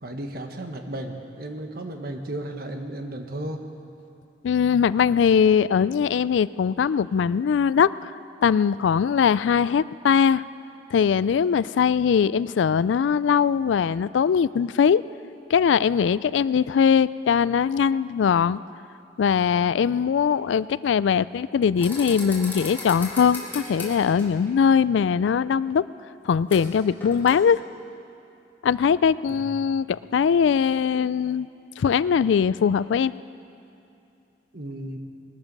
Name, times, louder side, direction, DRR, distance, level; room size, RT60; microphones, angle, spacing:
voice 1, 0.0-3.6 29.3-29.6 34.5-35.0, right 1 dB, 55° right, 5 dB, 1.3 m, -34 dB
voice 2, 4.4-8.1 8.4-10.4 10.9-15.0 15.5-18.6 19.2-25.8 26.2-27.6 28.6-31.5 31.8-33.1, left 7 dB, 85° left, 18 dB, 0.3 m, -21 dB
sound 1, 21.8-24.5 26.5-26.7 27.0-27.4, left 2 dB, 10° left, 3.0 m, -36 dB
20.5 x 13.0 x 5.4 m, 2.7 s
head